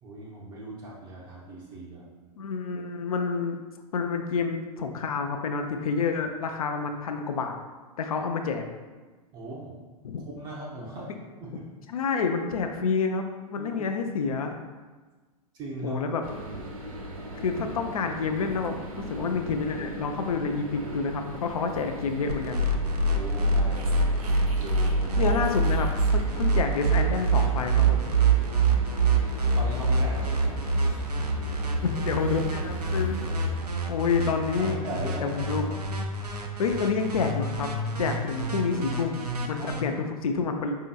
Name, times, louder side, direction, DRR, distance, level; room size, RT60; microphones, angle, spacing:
voice 1, 0.0-2.1 9.3-9.8 10.4-11.7 13.6-14.0 15.5-16.0 23.1-24.1 24.6-25.4 29.5-31.2 34.6-35.7 39.8-40.0, right 2 dB, 25° right, -4 dB, 0.5 m, -39 dB
voice 2, 2.4-3.6 3.9-7.6 8.0-8.6 10.0-10.2 11.9-14.6 15.8-16.2 17.4-22.6 25.2-28.0 31.8-33.2 33.9-34.8 35.2-35.7 36.6-37.7 38.0-40.8, left 5 dB, 65° left, 5 dB, 0.4 m, -28 dB
sound 1, 16.2-33.6, right 2 dB, 65° right, 0.9 m, -39 dB
sound 2, 22.3-39.8, right 3 dB, 80° right, 0.5 m, -25 dB
5.0 x 2.8 x 2.4 m, 1.3 s
figure-of-eight pair, 100°, 20 cm